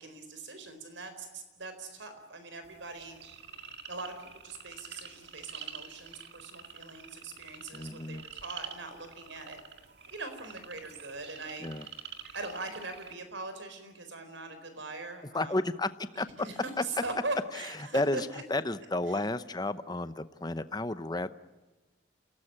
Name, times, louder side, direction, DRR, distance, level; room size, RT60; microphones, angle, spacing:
voice 1, 0.0-3.2 3.9-9.6 10.1-15.7 16.1-18.4 19.1-19.2, right 2 dB, 75° right, 8 dB, 4.3 m, -41 dB
sound 1, 2.6-13.1, right 7 dB, 60° right, 2.0 m, -47 dB
voice 2, 7.7-8.2 11.6-11.9 15.3-16.3 16.8-16.9 17.8-21.3, left 2 dB, 20° left, 13 dB, 0.8 m, -32 dB
28.5 x 17.5 x 8.8 m, 1.2 s
head